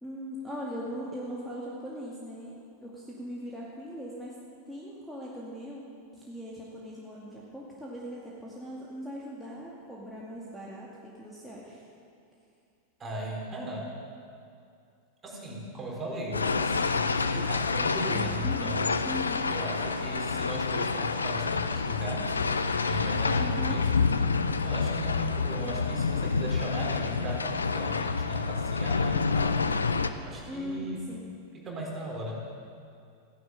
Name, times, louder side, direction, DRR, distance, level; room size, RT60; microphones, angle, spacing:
voice 1, 0.0-2.5 2.8-4.3 4.7-5.8 6.1-11.9 18.4-18.7 19.0-19.4 23.4-23.8 30.5-31.3, equal, ahead, -5 dB, 2.3 m, -39 dB
voice 2, 13.0-13.9 15.2-19.0 19.5-23.9 24.6-29.6 30.2-31.1 31.5-32.4, right 1 dB, 20° right, -2 dB, 4.3 m, -37 dB
sound 1, 16.3-30.1, left 4 dB, 75° left, 0.7 m, -28 dB
15.0 x 11.0 x 7.8 m, 2.4 s
figure-of-eight pair, 90°, 0 cm